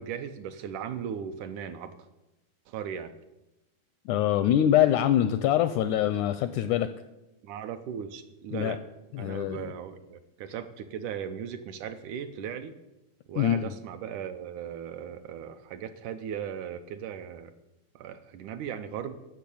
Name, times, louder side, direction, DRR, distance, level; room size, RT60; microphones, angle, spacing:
voice 1, 0.0-1.9 2.7-3.1 7.4-8.8 9.2-12.7 13.3-17.5 18.0-19.1, right 8 dB, 75° right, 9 dB, 2.0 m, -37 dB
voice 2, 4.1-6.9 8.5-8.8 9.1-9.7 13.4-13.7, left 11 dB, 85° left, 12 dB, 1.7 m, -24 dB
12.0 x 6.4 x 8.4 m, 0.95 s
omnidirectional pair, 3.9 m